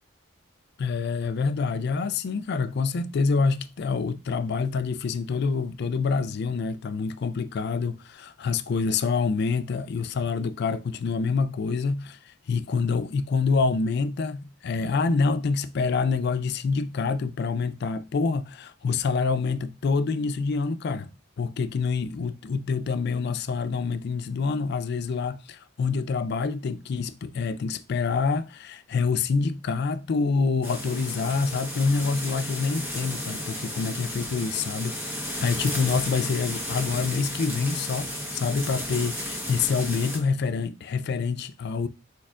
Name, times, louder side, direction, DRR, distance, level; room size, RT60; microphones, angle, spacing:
voice 1, 0.8-21.1 21.4-41.9, left 4 dB, 55° left, 0.4 m, -26 dB
sound 1, 30.6-40.2, left 1 dB, 10° right, 1.0 m, -33 dB
4.6 x 4.3 x 2.4 m
head